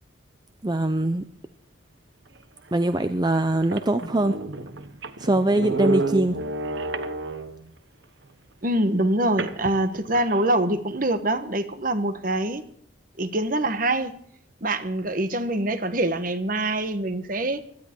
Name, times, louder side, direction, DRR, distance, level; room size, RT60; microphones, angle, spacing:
voice 1, 0.6-1.2 2.7-4.4 5.2-6.4, right 1 dB, 20° right, 0.6 m, -22 dB
sound 1, 2.7-2.8 3.3-3.4 3.6-7.7 9.4-10.5, right 2 dB, 65° right, 1.1 m, -30 dB
voice 2, 8.6-12.6 13.2-14.1 14.6-17.6, right 1 dB, 45° right, 1.2 m, -24 dB
17.0 x 12.5 x 4.5 m
head